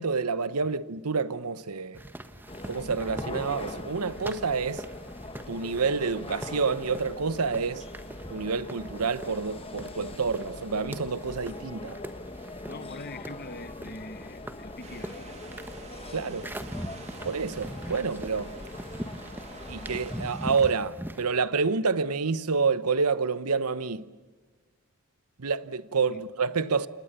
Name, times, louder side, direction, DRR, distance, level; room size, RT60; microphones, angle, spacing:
voice 1, 0.0-2.0 2.7-4.8 5.5-7.8 8.3-12.0 16.1-16.5 17.2-18.5 19.7-24.1 25.4-26.9, right 5 dB, 90° right, 1.0 m, -28 dB
sound 1, 1.9-21.3, equal, 10° right, 1.3 m, -42 dB
sound 2, 2.5-20.3, left 2 dB, 25° left, 1.4 m, -42 dB
voice 2, 12.7-15.4 26.1-26.2, left 2 dB, 45° left, 1.2 m, -43 dB
sound 3, 14.8-20.7, right 3 dB, 30° right, 2.6 m, -48 dB
29.5 x 28.5 x 6.9 m
head